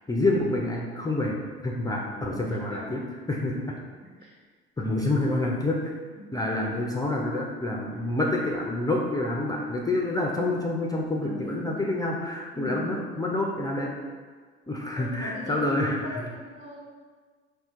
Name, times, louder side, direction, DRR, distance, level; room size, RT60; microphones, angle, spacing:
voice 1, 0.1-1.4 1.6-3.0 3.3-3.8 4.8-5.9 6.3-13.9 14.7-16.2, left 2 dB, 10° left, -2 dB, 0.4 m, -27 dB
voice 2, 2.3-2.9 4.0-4.3 6.2-6.3 10.9-11.8 12.5-12.8 15.0-15.6 16.0-16.8, equal, 65° right, -5 dB, 1.5 m, -40 dB
4.2 x 2.3 x 3.6 m, 1.5 s
hypercardioid pair, 75°, 32 cm